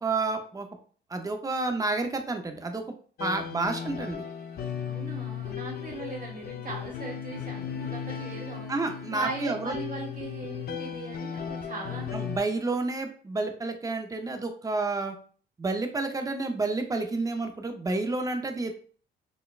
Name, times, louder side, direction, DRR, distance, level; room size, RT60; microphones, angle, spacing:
voice 1, 0.0-0.7 1.1-2.8 3.2-4.2 8.7-9.8 12.1-15.2 15.6-18.7, right 3 dB, 20° right, 6 dB, 0.5 m, -30 dB
sound 1, 3.2-12.4, left 8 dB, 50° left, 0.6 m, -36 dB
voice 2, 4.9-8.7 9.0-12.1, right 4 dB, 45° right, -1 dB, 1.3 m, -38 dB
3.9 x 2.1 x 2.4 m, 0.43 s
cardioid pair, 90°, 20 cm